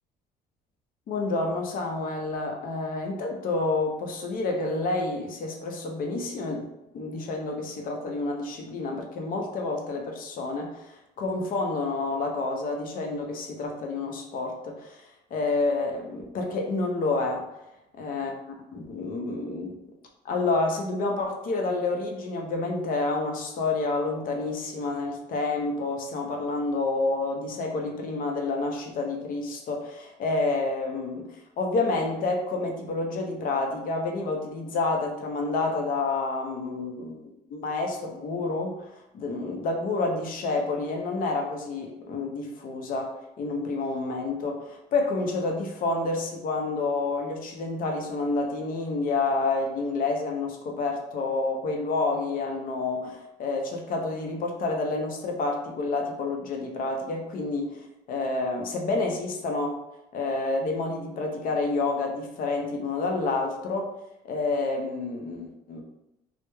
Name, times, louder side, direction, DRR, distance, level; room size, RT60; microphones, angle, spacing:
voice 1, 1.1-6.6 6.9-10.8 11.2-15.0 15.3-17.5 18.0-18.3 18.7-19.8 20.2-31.3 31.6-38.9 39.1-59.8 60.1-63.9 64.2-65.8, left 3 dB, 55° left, 2 dB, 0.6 m, -29 dB
2.9 x 2.1 x 2.2 m, 0.90 s
cardioid pair, 110°, 17 cm